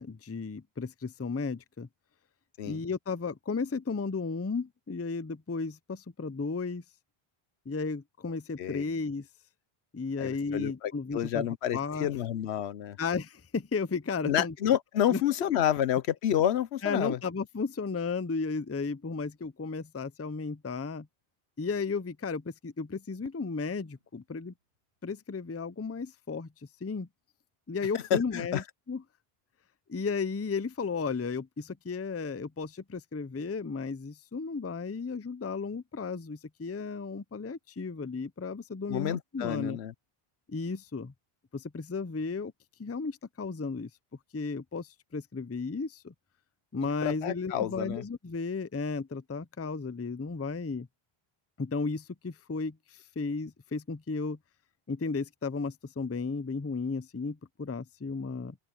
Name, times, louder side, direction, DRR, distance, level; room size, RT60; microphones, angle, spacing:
voice 1, 0.0-1.9 2.7-6.8 7.7-9.3 9.9-11.5 11.7-12.1 13.0-14.5 15.1-15.2 16.8-21.1 21.6-24.5 25.0-26.5 26.8-27.1 27.7-29.0 29.9-39.8 40.5-41.1 41.5-42.5 42.8-43.9 44.3-46.1 46.7-50.9 51.6-54.4 54.9-58.6, left 4 dB, 20° left, 0.4 m, -34 dB
voice 2, 10.2-13.0 14.2-17.2 27.9-28.6 38.9-39.9 47.0-48.0, left 10 dB, 85° left, 1.0 m, -29 dB
Fireworks, 23.2-26.3, right 1 dB, 70° right, 6.4 m, -62 dB
open air
omnidirectional pair, 1.1 m